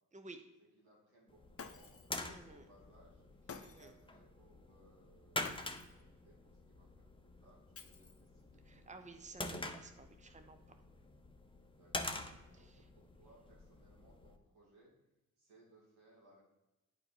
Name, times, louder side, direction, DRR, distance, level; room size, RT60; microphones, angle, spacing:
voice 1, 0.8-3.2 3.7-9.0 11.8-14.9 15.4-16.4, right 1 dB, 90° right, -6 dB, 2.8 m, -67 dB
sound 1, 1.3-14.4, left 2 dB, 15° left, 1.0 m, -47 dB
Shatter, 1.6-2.2 3.5-4.0 5.4-6.0 7.7-8.4, left 5 dB, 35° left, 0.9 m, -52 dB
voice 2, 2.3-2.7 3.6-3.9 8.7-10.6 12.5-12.8, right 3 dB, 20° right, 7 dB, 0.9 m, -54 dB
8.8 x 4.9 x 4.4 m, 1.0 s
hypercardioid pair, 45°, 40 cm